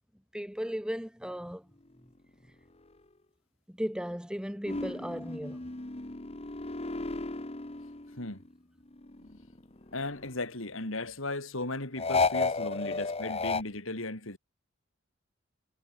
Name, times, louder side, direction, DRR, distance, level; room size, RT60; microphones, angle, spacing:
voice 1, 0.3-1.7 3.7-5.7, equal, 5° right, 4.4 m, -36 dB
sound 1, 4.6-8.5 8.9-10.5 12.0-13.6, left 3 dB, 30° left, 1.4 m, -33 dB
voice 2, 8.2-8.5 9.2-9.3 9.9-14.4, left 2 dB, 70° left, 3.9 m, -36 dB
head